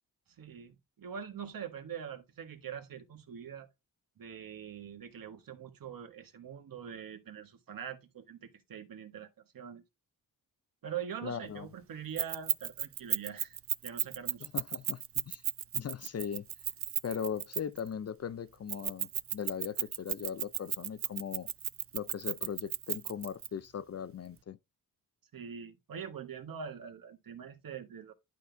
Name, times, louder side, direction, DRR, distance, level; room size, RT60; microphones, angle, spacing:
voice 1, 0.4-3.7 4.2-9.3 9.5-9.8 10.8-13.6 13.8-14.4 25.3-28.1, right 8 dB, 65° right, 1.7 m, -43 dB
voice 2, 11.2-11.7 14.4-15.4 15.7-16.5 17.0-21.5 21.9-24.6, left 8 dB, 45° left, 0.5 m, -39 dB
Keys jangling, 12.2-17.9 18.7-23.5, right 10 dB, 40° right, 0.4 m, -34 dB
11.5 x 4.1 x 3.4 m
wide cardioid pair, 115°, 37 cm